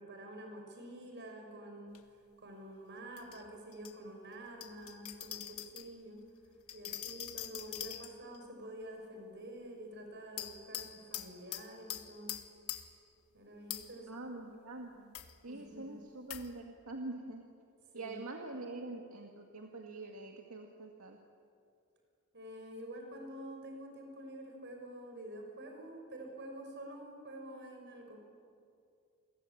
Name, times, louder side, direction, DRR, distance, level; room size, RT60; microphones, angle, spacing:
voice 1, 0.0-2.0 2.4-6.2 6.7-12.4 13.3-14.3 15.5-16.0 17.9-18.2 22.3-28.2, right 1 dB, 50° right, 3 dB, 6.5 m, -48 dB
sound 1, 1.9-2.0 3.2-3.9 4.6-5.9 6.7-8.4 10.4-13.0 13.7-14.1 15.1-15.3 16.3-16.5, left 12 dB, 80° left, 1.6 m, -44 dB
voice 2, 14.1-15.2 15.4-17.4 17.9-21.2, right 2 dB, 75° right, 2 dB, 2.1 m, -45 dB
29.0 x 23.0 x 8.7 m, 2.4 s
head